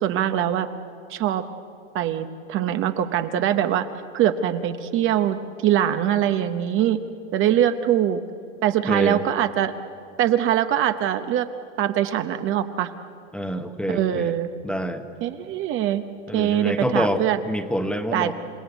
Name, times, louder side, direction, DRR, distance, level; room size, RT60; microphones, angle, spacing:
voice 1, 0.0-0.7 1.1-1.4 1.9-3.9 4.1-7.0 7.3-8.2 8.6-9.7 10.2-11.5 11.8-12.9 13.9-14.5 15.2-16.0 16.3-17.4 18.1-18.3, right 11 dB, 35° right, 9 dB, 0.9 m, -22 dB
voice 2, 8.9-9.2 13.3-14.3 14.6-15.0 16.3-18.3, equal, 5° left, 7 dB, 1.0 m, -26 dB
28.0 x 16.5 x 8.1 m, 2.6 s
supercardioid pair, 135°, 37 cm